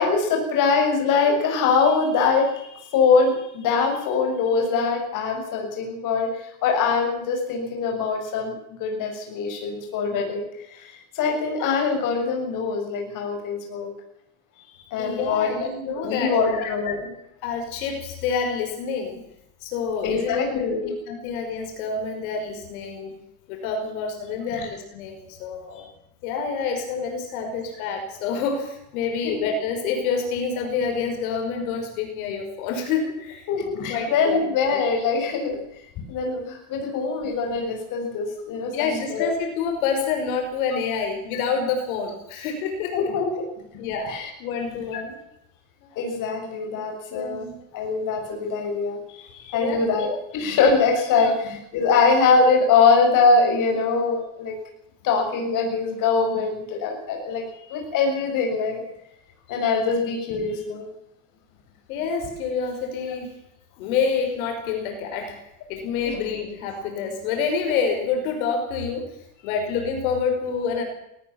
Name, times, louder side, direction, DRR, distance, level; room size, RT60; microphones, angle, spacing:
voice 1, 0.0-13.9 14.9-15.7 16.0-17.2 20.0-20.9 24.6-24.7 25.8-25.9 29.2-29.3 33.5-35.6 36.1-39.3 42.9-43.5 44.1-44.3 46.0-54.5 55.0-58.8 59.5-60.9 66.0-66.2, left 4 dB, 50° left, 2 dB, 7.1 m, -23 dB
voice 2, 15.0-16.6 17.4-19.2 19.6-20.7 21.1-23.1 23.5-25.9 26.2-33.5 33.9-34.4 38.7-43.1 43.8-45.2 47.1-47.6 49.5-49.8 51.2-51.3 61.9-63.3 63.8-65.4 65.7-69.1 69.4-70.8, left 5 dB, 85° left, 4 dB, 5.9 m, -27 dB
19.5 x 19.0 x 7.3 m, 0.81 s
cardioid pair, 145°, 41 cm